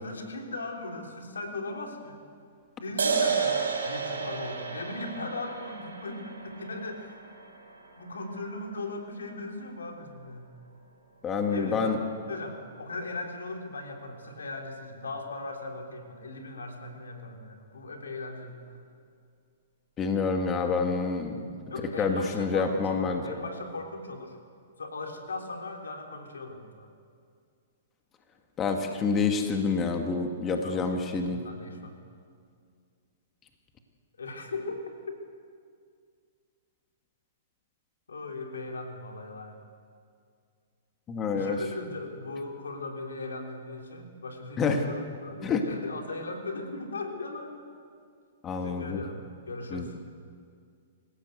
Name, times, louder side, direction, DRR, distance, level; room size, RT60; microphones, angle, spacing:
voice 1, 0.0-2.2 2.8-7.2 8.0-10.5 11.5-18.8 21.7-24.4 24.8-26.9 30.5-31.9 34.2-35.2 38.1-39.6 41.3-47.7 48.6-49.2 49.5-49.9, left 2 dB, 90° left, 3 dB, 3.5 m, -38 dB
sound 1, 3.0-10.0, right 5 dB, 85° right, 5.0 m, -33 dB
voice 2, 11.2-12.0 20.0-21.5 22.0-23.4 28.6-31.4 41.1-41.6 44.6-44.8 45.4-45.6 48.4-49.0 49.7-49.9, left 4 dB, 25° left, 4 dB, 2.1 m, -27 dB
25.5 x 16.0 x 8.1 m, 2.2 s
hypercardioid pair, 130°, 0 cm